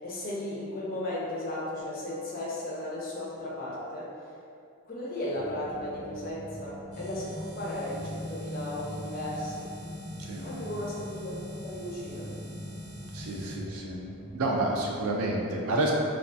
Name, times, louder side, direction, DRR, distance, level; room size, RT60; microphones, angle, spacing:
voice 1, 0.0-4.1 4.9-9.7 10.4-11.3 11.6-12.3, left 1 dB, 40° left, -6 dB, 0.5 m, -35 dB
sound 1, 5.3-14.9, right 1 dB, 20° right, 0.8 m, -44 dB
sound 2, 6.9-13.6, left 1 dB, 85° left, 0.6 m, -42 dB
voice 2, 13.1-14.0 14.3-15.9, right 2 dB, 80° right, -1 dB, 0.4 m, -29 dB
2.3 x 2.3 x 2.5 m, 2.5 s
head